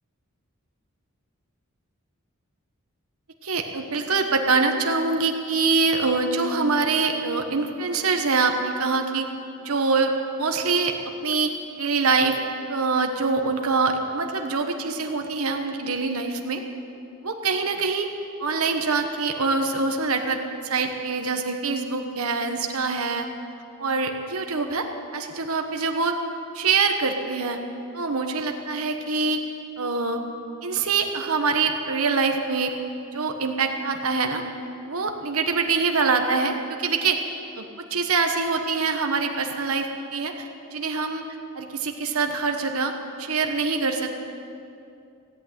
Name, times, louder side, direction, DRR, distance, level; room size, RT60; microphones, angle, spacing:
voice 1, 3.4-9.3 9.6-10.9 11.2-11.5 11.8-12.4 12.7-16.6 17.2-18.1 18.4-23.3 23.8-24.9 25.1-26.2 26.5-27.6 27.9-29.4 29.8-30.2 30.6-32.7 33.1-34.4 34.8-37.2 37.6-41.2 41.5-42.9 43.2-44.1, right 4 dB, 90° right, 4 dB, 1.3 m, -24 dB
16.5 x 8.8 x 9.3 m, 2.6 s
head